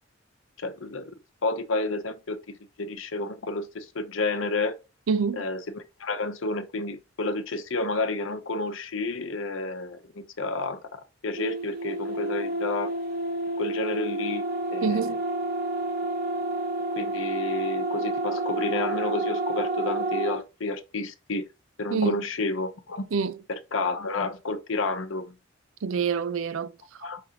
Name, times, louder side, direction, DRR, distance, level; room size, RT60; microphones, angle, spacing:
voice 1, 0.6-1.1 1.4-2.4 2.8-4.8 5.4-12.9 13.6-14.4 14.7-15.1 16.9-21.5 21.8-23.1 23.5-25.4 27.0-27.2, left 3 dB, 80° left, 0.7 m, -30 dB
voice 2, 5.1-5.5 14.8-15.2 21.9-22.2 23.1-23.4 25.8-27.1, right 5 dB, 85° right, 0.5 m, -27 dB
sound 1, 11.4-20.4, right 2 dB, 45° right, 0.9 m, -29 dB
4.9 x 3.3 x 2.9 m
head